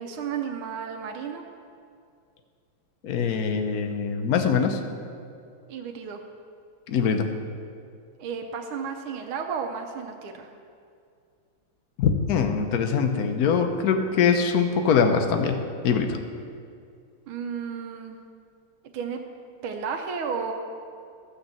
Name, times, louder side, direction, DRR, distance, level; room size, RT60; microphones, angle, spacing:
voice 1, 0.0-1.4 5.7-6.2 8.2-10.5 17.3-18.2 18.9-19.2 19.6-20.5, right 6 dB, 90° right, 3 dB, 1.6 m, -32 dB
voice 2, 3.0-4.8 6.9-7.3 12.0-16.2, left 6 dB, 55° left, 6 dB, 1.1 m, -23 dB
13.0 x 5.8 x 7.3 m, 2.3 s
omnidirectional pair, 2.2 m